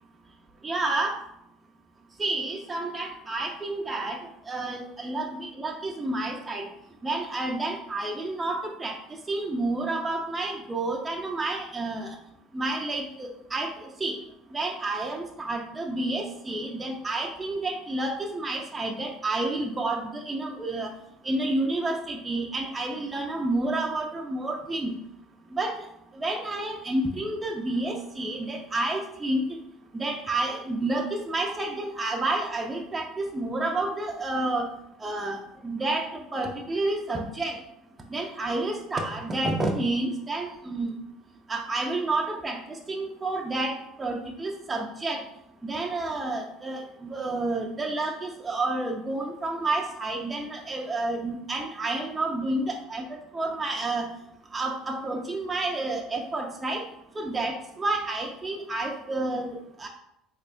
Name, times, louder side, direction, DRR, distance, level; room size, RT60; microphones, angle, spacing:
voice 1, 0.6-1.2 2.2-6.7 7.0-9.0 9.3-12.2 12.5-14.2 14.5-20.9 21.2-24.9 25.5-25.9 26.1-29.4 29.9-34.7 35.0-37.6 38.1-40.9 41.5-45.2 45.6-54.1 54.5-56.8 57.1-59.9, right 2 dB, 20° right, 0 dB, 0.5 m, -30 dB
3.5 x 3.3 x 2.5 m, 0.79 s
supercardioid pair, 100°, 0 cm